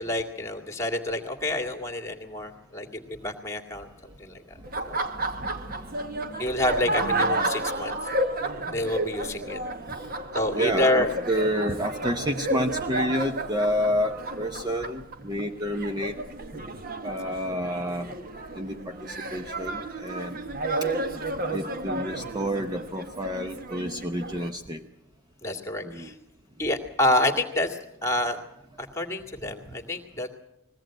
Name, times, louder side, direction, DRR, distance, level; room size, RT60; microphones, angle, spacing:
voice 1, 0.0-3.9 4.2-4.6 4.9-5.0 6.4-8.0 8.7-9.6 10.3-11.1 25.4-26.1 26.6-28.4 28.8-30.3, left 1 dB, 15° left, 2 dB, 2.1 m, -28 dB
Laughter, 4.6-24.5, right 2 dB, 40° right, 1.2 m, -32 dB
voice 2, 5.1-6.4 9.9-10.1 10.5-16.2 17.0-18.1 18.5-20.4 21.5-24.8 25.8-26.1 29.4-29.5, equal, 20° right, 6 dB, 0.7 m, -29 dB
21.0 x 16.5 x 9.0 m, 0.90 s
head